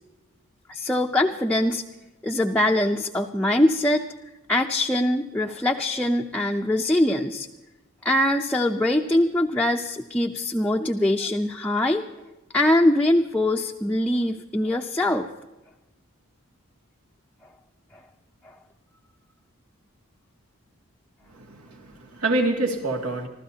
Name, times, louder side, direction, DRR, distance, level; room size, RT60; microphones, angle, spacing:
voice 1, 0.7-1.8 2.2-4.0 4.5-7.5 8.0-12.1 12.5-15.3, left 1 dB, 5° left, 0 dB, 0.5 m, -22 dB
voice 2, 21.3-23.3, right 2 dB, 85° right, 2 dB, 2.3 m, -26 dB
26.0 x 15.0 x 2.8 m, 1.1 s
head